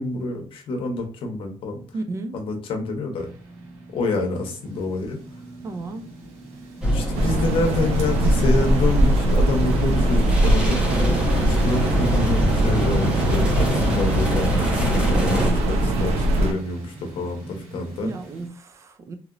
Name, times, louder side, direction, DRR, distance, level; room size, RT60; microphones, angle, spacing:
voice 1, 0.0-1.8 2.3-3.3 3.9-5.2 6.9-18.1, left 2 dB, 60° left, 3 dB, 0.8 m, -27 dB
voice 2, 1.9-2.4 5.6-6.2 18.0-19.2, right 2 dB, 30° right, 7 dB, 0.4 m, -33 dB
sound 1, 3.2-18.5, right 2 dB, 70° right, 1.4 m, -41 dB
sound 2, 6.8-15.5, equal, 10° right, 0.9 m, -24 dB
sound 3, 7.1-16.5, right 1 dB, 90° right, 0.6 m, -21 dB
2.9 x 2.8 x 2.5 m, 0.38 s
cardioid pair, 160°, 10 cm